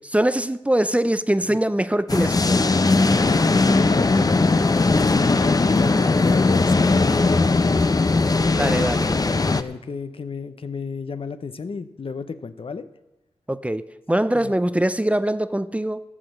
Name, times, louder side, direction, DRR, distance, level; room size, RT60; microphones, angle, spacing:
voice 1, 0.1-2.7 8.4-9.1 13.5-13.8 14.1-16.0, right 1 dB, 10° right, 13 dB, 0.6 m, -22 dB
sound 1, 2.1-9.6, left 3 dB, 35° left, 0.7 m, -19 dB
voice 2, 3.1-8.9 9.5-12.9 14.3-14.5, left 5 dB, 55° left, 12 dB, 0.9 m, -33 dB
15.0 x 7.2 x 6.5 m, 0.94 s
cardioid pair, 40°, 11 cm